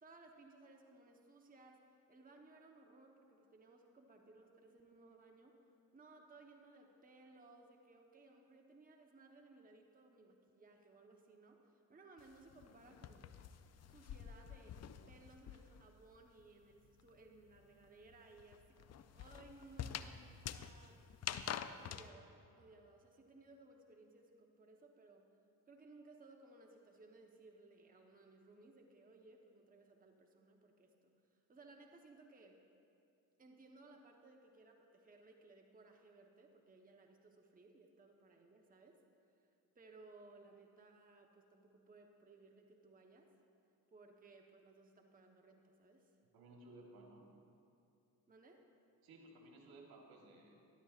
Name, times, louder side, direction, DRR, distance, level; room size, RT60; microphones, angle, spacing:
voice 1, 0.0-5.6 5.9-13.2 13.9-14.8 15.1-18.9 19.1-20.2 20.5-21.0 21.8-25.3 25.7-32.6 33.4-39.0 39.7-43.3 43.9-46.1 48.3-48.6, right 2 dB, 25° right, 1 dB, 1.0 m, -61 dB
sound 1, 12.2-15.9 16.2-22.1, left 9 dB, 45° left, 0.5 m, -47 dB
voice 2, 46.3-47.2 49.0-50.5, right 2 dB, 75° right, 0 dB, 1.6 m, -58 dB
12.5 x 12.5 x 2.5 m, 2.5 s
supercardioid pair, 70°, 37 cm